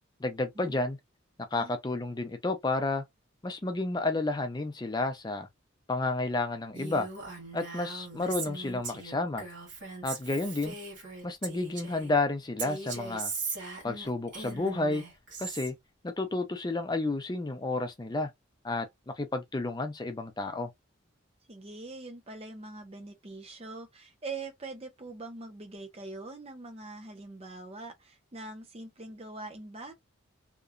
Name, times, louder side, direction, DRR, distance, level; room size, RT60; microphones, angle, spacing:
voice 1, 0.2-1.0 1.5-3.0 3.4-5.5 5.9-7.1 7.5-9.5 10.0-10.8 11.2-13.3 13.8-15.0 15.4-15.7 16.0-18.3 18.6-18.9 19.2-20.7, left 2 dB, 20° left, 0.4 m, -31 dB
Female speech woman speaking, 6.7-12.1 12.6-15.7, right 4 dB, 60° right, 1.6 m, -39 dB
voice 2, 21.5-29.9, right 3 dB, 30° right, 0.6 m, -43 dB
2.9 x 2.2 x 2.4 m
head